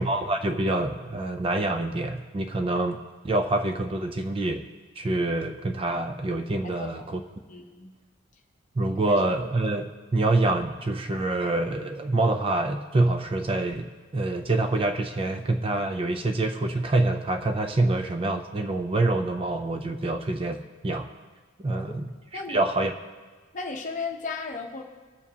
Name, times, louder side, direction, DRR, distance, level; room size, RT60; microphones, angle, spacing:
voice 1, 0.0-3.0 3.2-4.6 5.0-7.2 8.8-13.9 14.1-20.6 20.8-21.1 21.6-22.9, right 2 dB, 25° right, 6 dB, 0.4 m, -26 dB
voice 2, 6.6-7.0 7.5-7.9 9.0-9.1 21.7-21.9 22.3-22.6 23.5-24.8, left 4 dB, 35° left, 2 dB, 0.9 m, -35 dB
19.5 x 7.2 x 2.8 m, 1.4 s
head